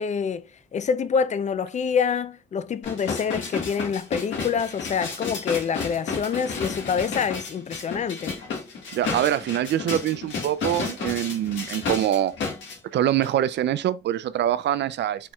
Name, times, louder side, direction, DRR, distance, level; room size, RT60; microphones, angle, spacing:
voice 1, 0.0-8.3, left 6 dB, 35° left, 0.5 m, -26 dB
sound 1, 2.8-12.8 13.2-13.3, left 4 dB, 70° left, 1.8 m, -32 dB
voice 2, 8.9-12.3 12.9-15.3, right 11 dB, 65° right, 0.4 m, -24 dB
4.4 x 4.3 x 2.3 m
cardioid pair, 90°, 20 cm